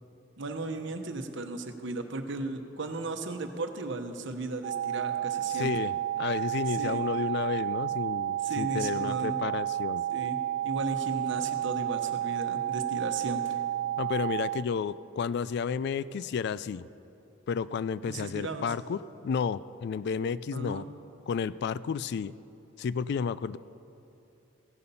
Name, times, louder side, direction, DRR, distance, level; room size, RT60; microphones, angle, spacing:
voice 1, 0.4-5.7 6.8-7.0 8.4-9.4 10.1-13.6 18.1-18.7 20.5-20.9, right 2 dB, 65° right, 6 dB, 1.0 m, -36 dB
sound 1, 4.6-14.6, right 12 dB, 45° right, 0.3 m, -31 dB
voice 2, 5.5-10.0 14.0-16.9 17.5-20.8 21.3-22.3 22.8-23.6, left 6 dB, 55° left, 18 dB, 0.3 m, -32 dB
15.5 x 11.0 x 5.6 m, 2.8 s
head